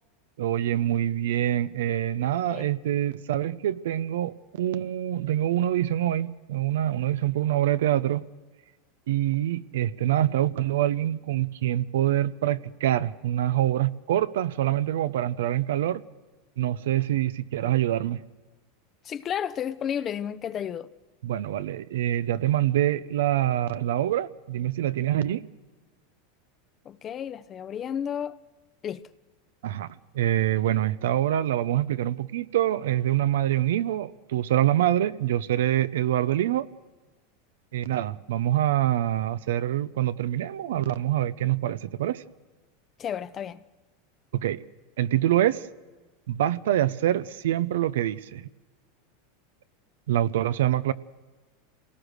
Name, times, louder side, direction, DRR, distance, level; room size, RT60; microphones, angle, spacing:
voice 1, 0.4-8.3 9.1-16.0 16.6-18.2 21.2-25.4 29.6-29.9 30.1-36.7 37.7-42.2 44.3-44.6 45.0-45.7 46.3-48.5 50.1-50.9, right 12 dB, 80° right, 0.6 m, -25 dB
voice 2, 2.4-2.7 19.0-20.9 26.8-28.4 28.8-29.0 43.0-43.6, left 9 dB, 35° left, 0.7 m, -32 dB
26.5 x 18.0 x 6.5 m
hypercardioid pair, 105°, 0 cm